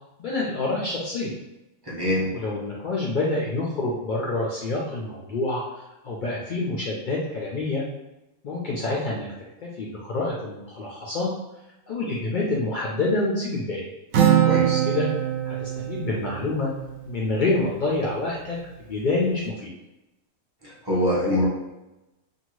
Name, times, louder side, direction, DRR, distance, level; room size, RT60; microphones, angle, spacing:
voice 1, 0.2-1.3 2.3-5.6 6.0-7.8 8.4-9.3 9.6-11.3 11.9-13.9 14.8-15.1 15.4-16.7 17.1-18.6 18.9-19.7, left 2 dB, 75° left, -4 dB, 0.4 m, -27 dB
voice 2, 1.9-2.3 14.4-14.8 20.6-21.5, left 1 dB, 25° right, -6 dB, 0.5 m, -24 dB
Acoustic guitar, 14.1-17.8, right 10 dB, 70° right, 0.8 m, -24 dB
2.7 x 2.3 x 3.0 m, 0.96 s
omnidirectional pair, 1.4 m